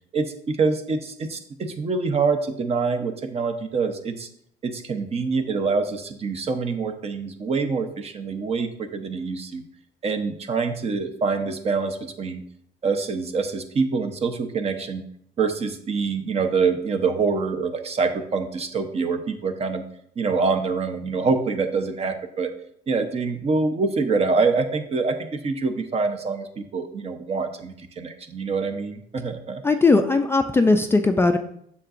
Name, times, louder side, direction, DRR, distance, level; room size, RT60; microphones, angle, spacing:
voice 1, 0.1-4.3 4.6-9.6 10.0-12.4 12.8-15.0 15.4-19.8 20.2-22.5 22.9-29.6, right 4 dB, 40° right, 7 dB, 0.8 m, -25 dB
voice 2, 29.6-31.4, left 3 dB, 15° left, 6 dB, 0.4 m, -18 dB
7.4 x 6.8 x 2.5 m, 0.69 s
cardioid pair, 110°, 17 cm